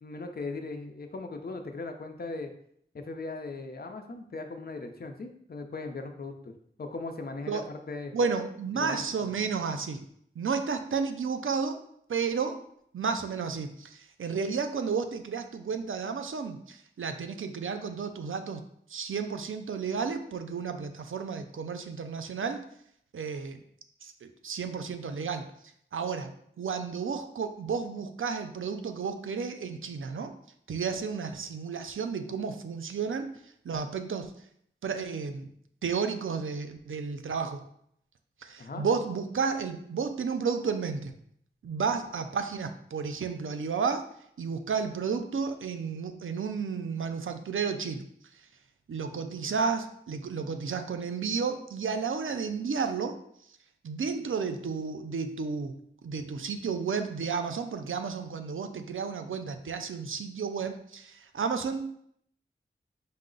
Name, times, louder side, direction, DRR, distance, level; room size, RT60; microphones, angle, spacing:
voice 1, 0.0-2.5 2.9-8.1 8.7-9.3 38.6-38.9, left 3 dB, 50° left, 5 dB, 0.5 m, -39 dB
voice 2, 8.1-10.0 10.4-11.8 12.1-12.6 12.9-18.6 18.9-22.6 23.1-23.6 24.0-25.4 25.9-30.3 30.7-33.3 33.6-34.3 34.8-35.5 35.8-37.6 38.4-41.1 41.6-44.1 44.4-48.1 48.9-53.2 53.8-61.9, right 5 dB, 85° right, 8 dB, 0.4 m, -32 dB
5.3 x 2.0 x 3.8 m, 0.69 s
wide cardioid pair, 50°, 20 cm